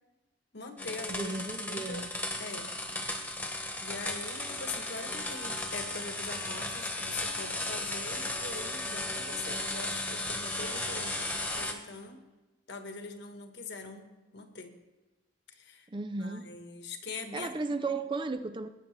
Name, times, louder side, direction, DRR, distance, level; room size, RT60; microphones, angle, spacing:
voice 1, 0.5-2.1 2.4-2.7 3.8-12.2 12.7-14.7 15.6-15.9 16.2-17.8, left 3 dB, 60° left, 1.4 m, -43 dB
sound 1, 0.8-11.7, left 2 dB, 10° left, 1.3 m, -35 dB
voice 2, 1.1-2.1 15.9-16.5 17.3-18.7, right 3 dB, 25° right, 0.5 m, -35 dB
20.0 x 9.5 x 3.3 m
head